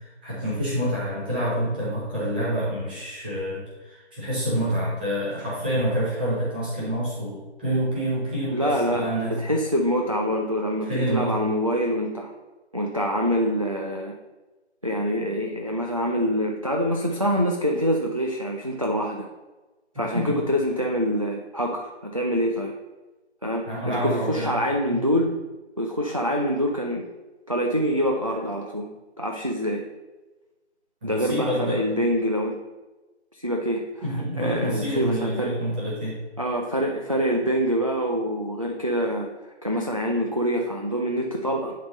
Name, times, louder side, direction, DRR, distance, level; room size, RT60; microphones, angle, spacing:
voice 1, 0.0-9.4 10.8-11.3 20.1-20.4 23.7-24.5 24.9-25.0 31.0-31.8 34.0-36.2, equal, 10° right, -8 dB, 1.0 m, -27 dB
voice 2, 8.5-12.3 12.7-14.1 14.8-19.3 20.0-22.7 23.4-25.3 25.8-27.0 27.5-28.9 29.2-29.8 31.0-32.6 33.3-33.8 34.1-35.5 36.4-39.3 39.6-41.7, equal, 30° right, 1 dB, 0.4 m, -25 dB
10.5 x 3.6 x 4.0 m, 1.2 s
figure-of-eight pair, 155°, 34 cm